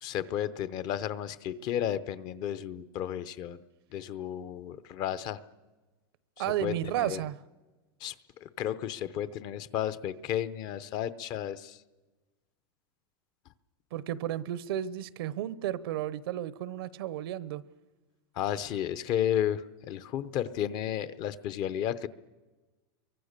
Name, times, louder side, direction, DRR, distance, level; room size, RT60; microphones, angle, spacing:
voice 1, 0.0-3.6 3.9-5.4 6.6-7.2 8.0-8.1 8.4-11.8 18.4-22.1, left 10 dB, 30° left, 0.7 m, -33 dB
voice 2, 6.4-7.4 13.9-17.6, right 12 dB, 70° right, 0.9 m, -33 dB
29.5 x 23.5 x 6.7 m
supercardioid pair, 165°, 13 cm